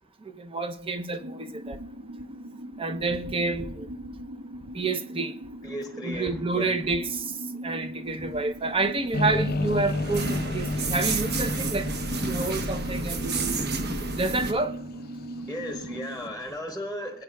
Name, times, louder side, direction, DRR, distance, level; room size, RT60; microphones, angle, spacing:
voice 1, 0.3-1.8 2.8-3.9 4.7-5.3 6.0-7.3 7.6-11.9 12.2-13.6 14.2-14.7, right 3 dB, 25° right, 0.6 m, -29 dB
sound 1, 1.2-16.3, right 1 dB, 80° right, 1.1 m, -40 dB
voice 2, 5.6-6.8 15.3-17.2, equal, 5° right, 1.1 m, -36 dB
sound 2, 8.6-14.5, right 3 dB, 50° right, 1.0 m, -31 dB
sound 3, 9.1-16.2, left 2 dB, 45° left, 0.5 m, -33 dB
22.0 x 9.3 x 2.3 m
head